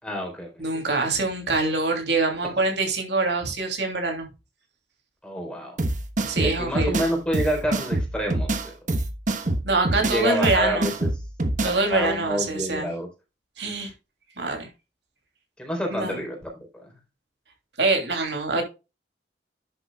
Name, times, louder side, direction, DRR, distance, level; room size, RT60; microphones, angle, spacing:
voice 1, 0.0-1.1 5.2-5.8 6.4-8.8 10.0-11.1 11.6-13.1 15.6-16.5, equal, 5° left, 4.4 m, -28 dB
voice 2, 0.6-4.3 6.2-7.1 9.6-10.9 11.6-12.9 13.6-13.9 14.4-14.7 15.9-16.2 17.8-18.6, right 3 dB, 75° right, 3.0 m, -24 dB
sound 1, 5.8-11.8, right 2 dB, 45° right, 1.2 m, -26 dB
10.5 x 8.0 x 2.4 m
head